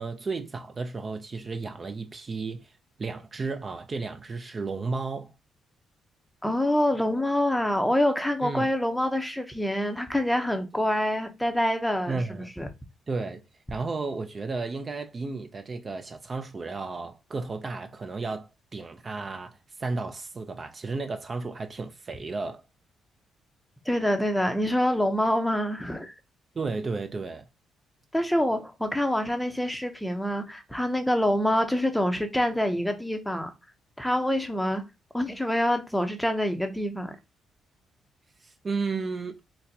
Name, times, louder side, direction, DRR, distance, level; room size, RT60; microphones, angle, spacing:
voice 1, 0.0-5.3 8.4-8.7 12.1-12.5 13.1-13.4 13.7-22.7 26.5-27.5 38.4-39.4, right 4 dB, 35° right, 0.4 m, -33 dB
voice 2, 6.4-12.2 12.6-12.7 23.9-26.1 28.1-33.5 34.0-34.8 35.1-37.2, left 1 dB, 5° left, 0.6 m, -26 dB
4.0 x 2.1 x 2.7 m
cardioid pair, 90°, 0 cm